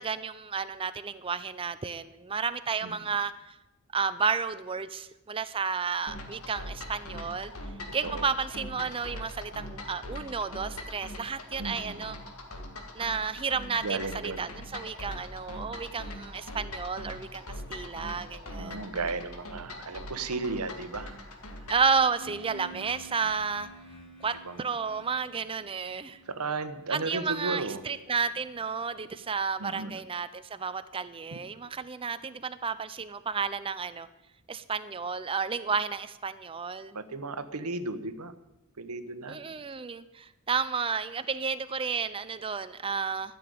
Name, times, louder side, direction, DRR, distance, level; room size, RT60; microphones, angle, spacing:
voice 1, 0.0-3.6 3.9-7.5 7.9-12.2 12.9-17.4 17.7-18.8 21.7-23.7 24.2-26.2 26.9-34.1 34.5-37.0 39.3-43.4, right 5 dB, 25° right, 12 dB, 0.5 m, -32 dB
voice 2, 2.8-3.2 8.0-8.3 11.6-12.0 13.8-14.5 18.6-21.2 22.7-22.8 24.4-24.6 26.2-27.8 29.6-30.0 31.3-31.4 36.9-38.3 38.8-39.6, right 3 dB, 80° right, 12 dB, 1.0 m, -35 dB
sound 1, 6.1-21.9, left 1 dB, 70° left, 2.1 m, -42 dB
sound 2, 22.1-30.0, equal, 85° left, 2.7 m, -51 dB
13.0 x 6.9 x 9.3 m, 0.99 s
head